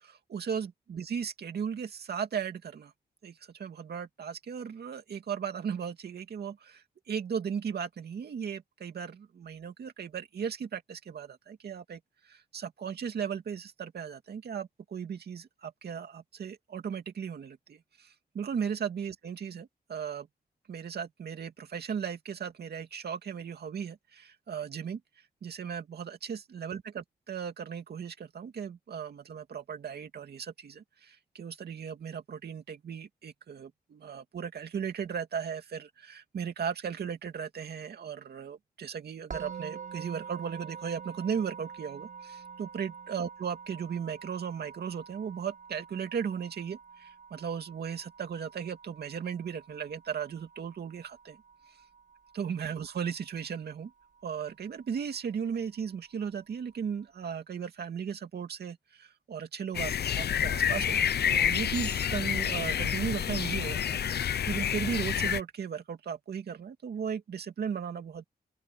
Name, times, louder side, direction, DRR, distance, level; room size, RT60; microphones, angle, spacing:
voice 1, 0.0-2.9 3.2-12.0 12.3-20.3 20.7-25.0 25.4-51.4 52.3-53.9 54.2-61.0 61.3-68.2, right 7 dB, 75° right, 2.4 m, -36 dB
Musical instrument, 39.3-50.4, right 6 dB, 55° right, 7.3 m, -46 dB
sound 1, 59.7-65.4, left 9 dB, 80° left, 0.8 m, -29 dB
open air
wide cardioid pair, 155°, 17 cm